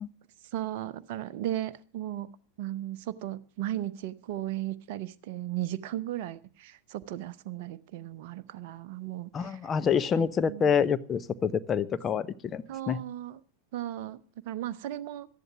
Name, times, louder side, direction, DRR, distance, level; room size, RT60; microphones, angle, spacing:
voice 1, 0.5-2.3 2.6-9.6 10.1-10.7 12.7-13.4 13.7-14.2 14.4-15.3, right 13 dB, 50° right, 13 dB, 0.8 m, -36 dB
voice 2, 9.3-13.0, left 7 dB, 25° left, 12 dB, 0.7 m, -27 dB
13.0 x 11.0 x 6.1 m, 0.41 s
figure-of-eight pair, 90°, 0 cm